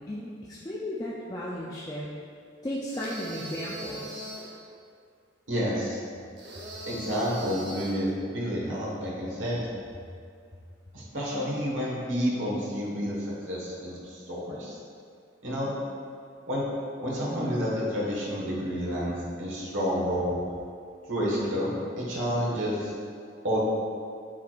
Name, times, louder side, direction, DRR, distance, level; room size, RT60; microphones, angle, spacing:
voice 1, 0.0-2.1 2.6-4.2, left 1 dB, 20° left, -6 dB, 0.4 m, -35 dB
sound 1, 2.9-4.6 6.4-8.1, right 1 dB, 60° right, 0.9 m, -40 dB
voice 2, 5.5-6.0 6.8-9.6 10.9-14.8 15.4-15.7 16.5-16.6 17.0-20.4 21.1-22.9 23.4-23.6, equal, 85° right, -5 dB, 1.5 m, -29 dB
8.3 x 4.7 x 2.5 m, 2.3 s
head